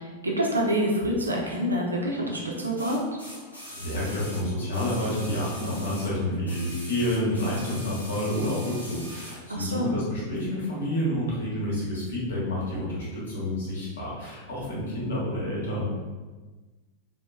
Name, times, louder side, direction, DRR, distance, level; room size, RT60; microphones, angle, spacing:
voice 1, 0.0-3.0 9.5-9.9, equal, 80° right, -2 dB, 0.5 m, -27 dB
sound 1, 1.2-1.3 2.8-6.1 6.4-9.4 10.3-10.4, equal, 85° left, 0.7 m, -42 dB
voice 2, 3.6-15.8, left 1 dB, 60° left, -6 dB, 1.0 m, -29 dB
2.8 x 2.1 x 2.2 m, 1.3 s
figure-of-eight pair, 90°, 0 cm